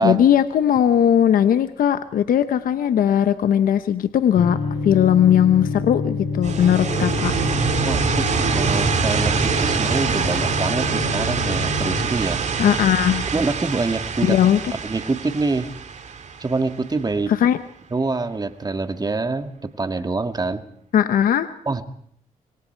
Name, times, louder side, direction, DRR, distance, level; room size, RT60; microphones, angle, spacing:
voice 1, 0.0-7.3 12.6-13.3 14.2-14.7 17.3-17.6 20.9-21.5, left 9 dB, 75° left, 11 dB, 0.9 m, -18 dB
sound 1, 4.3-12.1, left 5 dB, 40° left, 7.8 m, -27 dB
sound 2, 6.4-17.1, right 6 dB, 55° right, 2.1 m, -24 dB
voice 2, 7.8-12.4 13.3-14.4 14.8-15.7 16.4-17.3 17.9-19.5 19.8-20.6 21.7-21.9, right 3 dB, 30° right, 8 dB, 1.9 m, -25 dB
26.5 x 24.0 x 4.6 m, 0.64 s
cardioid pair, 75°, 14 cm